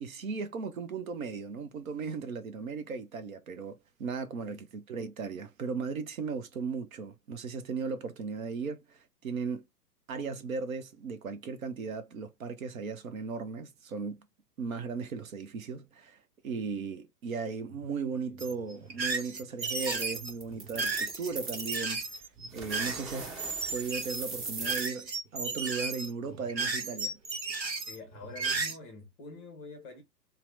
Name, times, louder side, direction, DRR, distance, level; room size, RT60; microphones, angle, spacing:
voice 1, 0.0-9.7 10.1-14.3 14.6-16.2 16.4-22.0 22.5-23.4 23.7-27.2, right 5 dB, 55° right, 0.7 m, -37 dB
sound 1, 18.4-28.8, right 4 dB, 90° right, 0.9 m, -34 dB
sound 2, 19.8-21.9 22.5-24.9, right 3 dB, 25° right, 1.3 m, -40 dB
voice 2, 27.9-30.0, left 3 dB, 15° left, 0.6 m, -46 dB
2.8 x 2.1 x 3.1 m
figure-of-eight pair, 110°, 50 cm